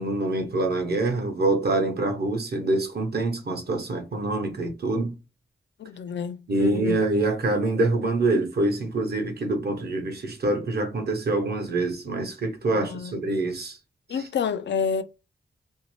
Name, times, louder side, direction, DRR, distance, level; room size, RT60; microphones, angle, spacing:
voice 1, 0.0-5.1 6.5-13.8 14.1-14.2, right 2 dB, 55° right, 0.8 m, -25 dB
voice 2, 5.8-7.0 12.7-13.1 14.1-15.0, left 6 dB, 65° left, 0.4 m, -29 dB
2.6 x 2.0 x 3.0 m
cardioid pair, 70°, 20 cm